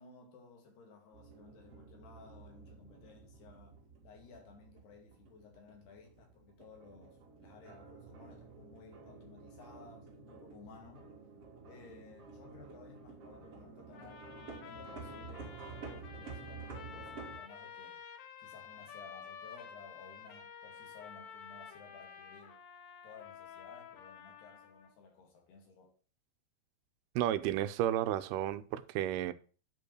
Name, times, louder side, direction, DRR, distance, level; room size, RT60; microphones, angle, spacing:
voice 1, 0.0-11.1 11.7-14.3 14.6-15.6 15.9-18.0 18.4-22.6 23.0-25.9, left 5 dB, 85° left, 4.5 m, -56 dB
sound 1, 1.1-17.4, right 4 dB, 45° right, 2.6 m, -51 dB
sound 2, 13.9-24.9, left 7 dB, 70° left, 2.9 m, -51 dB
voice 2, 27.2-29.3, right 12 dB, 85° right, 2.6 m, -32 dB
9.5 x 5.3 x 6.3 m
omnidirectional pair, 4.5 m